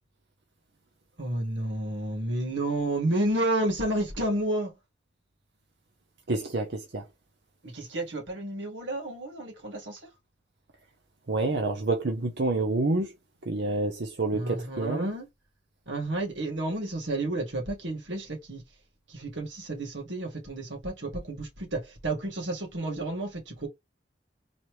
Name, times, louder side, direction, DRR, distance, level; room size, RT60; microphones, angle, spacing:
voice 1, 1.2-4.7 7.6-10.1 14.3-15.3 15.9-18.6 19.1-23.7, right 1 dB, 85° right, 1.8 m, -31 dB
voice 2, 6.3-7.1 11.3-13.1 13.5-15.1, right 2 dB, 65° right, 0.7 m, -28 dB
4.1 x 3.0 x 3.1 m
head